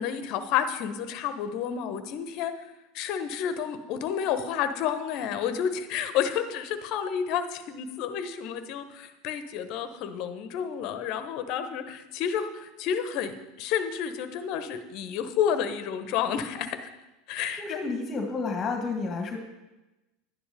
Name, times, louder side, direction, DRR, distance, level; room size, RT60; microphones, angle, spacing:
voice 1, 0.0-2.5 2.9-16.9 17.3-17.8, left 8 dB, 55° left, 10 dB, 1.1 m, -30 dB
voice 2, 17.5-19.4, left 4 dB, 25° left, 4 dB, 1.9 m, -31 dB
11.5 x 10.0 x 5.2 m, 1.0 s
hypercardioid pair, 80°, 0 cm